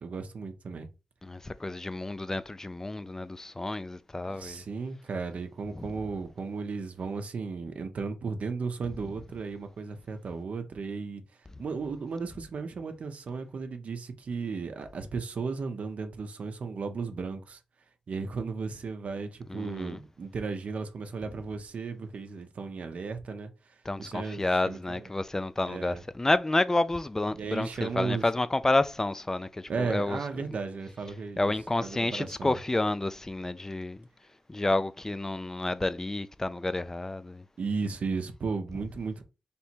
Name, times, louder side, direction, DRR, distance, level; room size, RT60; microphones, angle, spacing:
voice 1, 0.0-0.9 4.4-11.2 11.6-17.6 18.1-23.5 24.0-25.1 25.6-26.0 27.3-28.2 29.7-31.5 31.8-32.6 37.6-39.2, right 4 dB, 70° right, 0.6 m, -35 dB
voice 2, 1.2-4.6 5.8-5.9 19.5-20.0 23.9-30.2 31.4-34.0 34.5-37.4, left 2 dB, 20° left, 0.4 m, -30 dB
3.4 x 2.9 x 4.3 m
cardioid pair, 75°, 2 cm